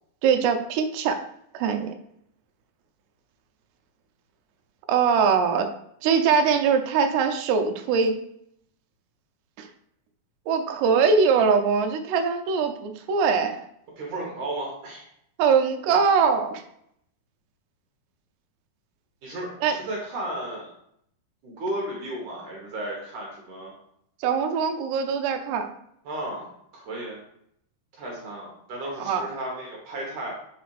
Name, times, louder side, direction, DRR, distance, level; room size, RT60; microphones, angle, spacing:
voice 1, 0.2-1.2 1.5-1.9 4.9-5.7 6.0-8.2 9.6-9.7 10.5-13.6 15.4-16.6 19.6-19.8 24.2-25.7 29.0-29.3, right 6 dB, 85° right, 6 dB, 2.8 m, -22 dB
voice 2, 14.0-15.1 19.2-20.7 21.4-23.7 26.1-27.2 28.0-30.4, right 1 dB, 60° right, -3 dB, 2.3 m, -34 dB
5.0 x 5.0 x 4.8 m, 0.72 s
omnidirectional pair, 4.9 m